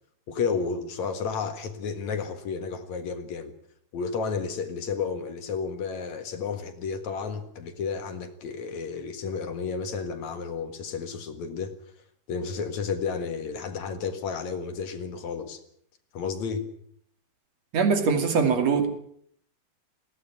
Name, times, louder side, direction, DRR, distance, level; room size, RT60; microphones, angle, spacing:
voice 1, 0.3-3.5 3.9-11.7 12.3-15.6 16.1-16.7, left 5 dB, 55° left, 8 dB, 2.7 m, -32 dB
voice 2, 17.7-18.9, right 5 dB, 50° right, 6 dB, 3.6 m, -22 dB
21.0 x 17.0 x 8.8 m, 0.67 s
omnidirectional pair, 4.2 m